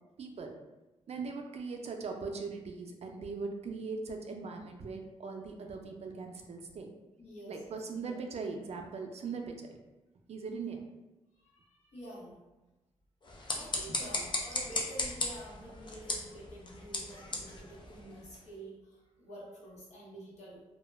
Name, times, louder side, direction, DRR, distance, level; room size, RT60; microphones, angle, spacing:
voice 1, 0.2-0.6 1.1-6.9 7.5-9.8 10.3-10.9 14.0-14.1, right 4 dB, 65° right, 3 dB, 0.4 m, -40 dB
voice 2, 7.2-8.4 10.5-10.7 11.3-12.4 13.5-20.6, right 1 dB, 80° left, -6 dB, 1.0 m, -49 dB
sound 1, 13.2-18.5, left 2 dB, 40° left, 0.5 m, -37 dB
2.2 x 2.1 x 3.2 m, 1.0 s
cardioid pair, 85°, 12 cm